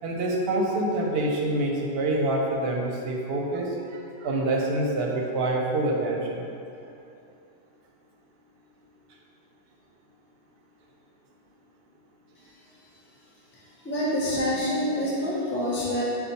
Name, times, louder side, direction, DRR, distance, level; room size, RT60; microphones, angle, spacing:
voice 1, 0.0-6.4, right 2 dB, 65° right, -1 dB, 0.8 m, -26 dB
voice 2, 13.8-16.0, left 1 dB, 15° left, -8 dB, 0.5 m, -26 dB
4.3 x 2.3 x 4.0 m, 2.7 s
omnidirectional pair, 1.2 m